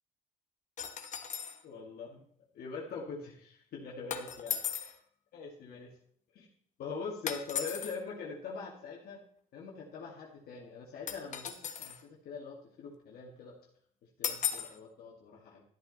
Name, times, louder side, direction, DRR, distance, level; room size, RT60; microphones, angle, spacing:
sound 1, 0.8-1.6 4.1-5.0 7.3-7.9 11.1-12.0 14.2-14.8, left 8 dB, 45° left, 1.3 m, -36 dB
voice 1, 1.6-2.2 2.5-4.6 5.3-6.0 6.3-6.5 6.8-9.2 9.5-13.6 14.2-15.6, left 5 dB, 65° left, -2 dB, 1.9 m, -43 dB
13.0 x 8.3 x 4.0 m, 0.65 s
cardioid pair, 110°, 17 cm